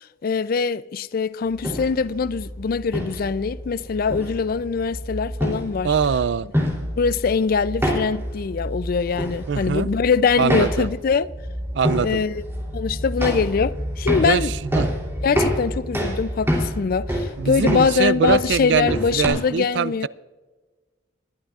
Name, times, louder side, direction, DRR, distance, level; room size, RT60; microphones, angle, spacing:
voice 1, 0.0-5.9 7.0-11.3 12.0-12.4 12.7-14.5 15.2-20.1, left 5 dB, 50° left, 0.4 m, -23 dB
sound 1, 1.5-19.3, equal, 15° right, 3.1 m, -28 dB
voice 2, 5.8-6.5 9.5-9.9 10.4-10.9 11.7-12.2 14.2-14.9 17.4-20.1, right 6 dB, 65° right, 0.4 m, -23 dB
20.5 x 11.5 x 2.4 m
head